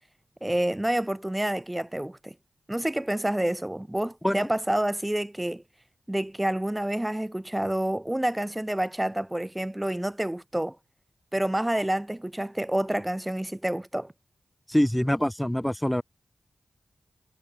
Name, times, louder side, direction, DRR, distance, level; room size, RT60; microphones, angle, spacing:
voice 1, 0.4-2.3 2.7-5.6 6.1-10.8 11.3-14.1, right 1 dB, 15° right, 6.1 m, -28 dB
voice 2, 14.7-16.0, equal, 5° left, 5.9 m, -24 dB
cardioid pair, 60°, 0 cm